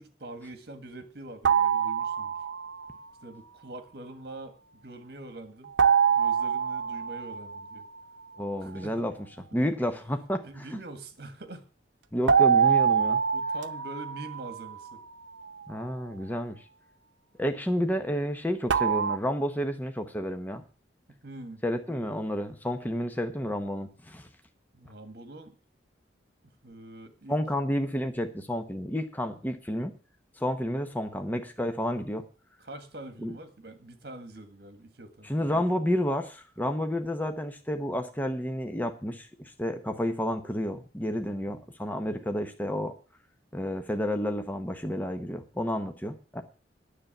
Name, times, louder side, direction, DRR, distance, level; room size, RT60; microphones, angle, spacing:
voice 1, 0.0-2.3 3.2-5.7 6.1-7.8 8.6-9.0 10.4-11.6 13.3-15.0 21.1-21.6 24.7-25.5 26.6-27.4 32.6-35.6, right 2 dB, 55° right, 9 dB, 1.7 m, -44 dB
sound 1, 1.5-3.0 5.8-8.2 12.3-15.4 18.7-19.2, right 7 dB, 85° right, 0.7 m, -25 dB
voice 2, 8.4-9.1 9.5-10.8 12.1-13.2 15.7-16.6 17.4-20.6 21.6-24.3 27.3-29.9 30.4-32.2 33.2-33.3 35.2-43.0 43.5-46.4, equal, 10° left, 6 dB, 0.8 m, -30 dB
9.7 x 6.7 x 9.0 m, 0.39 s
head